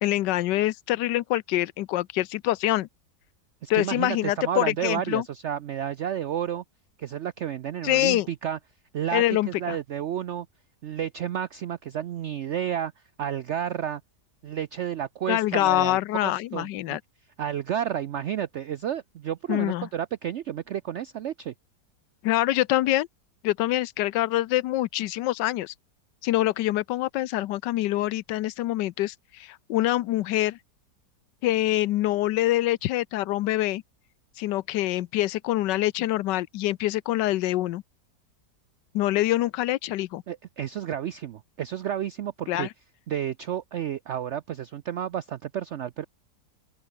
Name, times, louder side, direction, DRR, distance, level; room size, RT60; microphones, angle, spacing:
voice 1, 0.0-2.9 3.7-5.2 7.8-8.3 9.1-9.8 15.3-17.0 19.5-19.9 22.2-23.1 23.4-25.7 26.2-30.6 31.4-33.8 34.4-37.8 38.9-40.2 42.5-42.7, left 15 dB, 85° left, 1.3 m, -25 dB
voice 2, 3.6-6.6 7.0-8.6 8.9-10.5 10.8-12.9 13.2-14.0 14.4-17.0 17.4-21.5 40.3-42.7 43.1-46.0, right 10 dB, 80° right, 0.6 m, -31 dB
open air
omnidirectional pair, 1.8 m